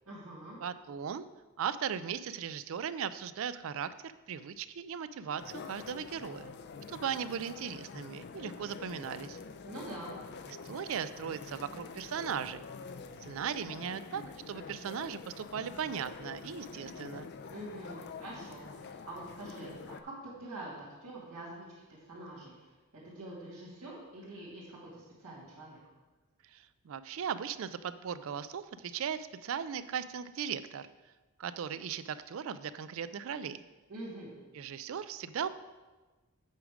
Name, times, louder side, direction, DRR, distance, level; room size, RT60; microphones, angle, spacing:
voice 1, 0.1-0.6 9.6-10.1 17.5-20.7 21.0-22.7 22.9-25.8 33.9-34.3, right 1 dB, 80° right, -9 dB, 2.4 m, -45 dB
voice 2, 0.6-1.2 1.6-6.5 6.9-9.4 10.5-12.6 13.2-17.3 26.5-30.9 31.4-33.6 34.5-35.5, right 7 dB, 60° right, 14 dB, 0.4 m, -38 dB
sound 1, 5.4-20.0, left 5 dB, 50° left, 0.4 m, -46 dB
8.2 x 5.0 x 4.9 m, 1.2 s
head